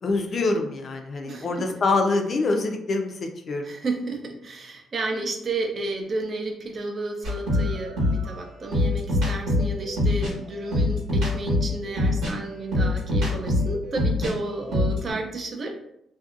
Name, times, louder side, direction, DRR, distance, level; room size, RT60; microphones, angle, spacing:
voice 1, 0.0-3.1 3.5-3.7, left 3 dB, 50° left, 4 dB, 0.4 m, -25 dB
voice 2, 3.6-15.7, right 2 dB, 45° right, 3 dB, 0.5 m, -32 dB
sound 1, 7.2-14.3 14.6-15.1, left 2 dB, 90° right, 1.2 m, -24 dB
2.6 x 2.2 x 2.4 m, 0.78 s
cardioid pair, 85°, 0 cm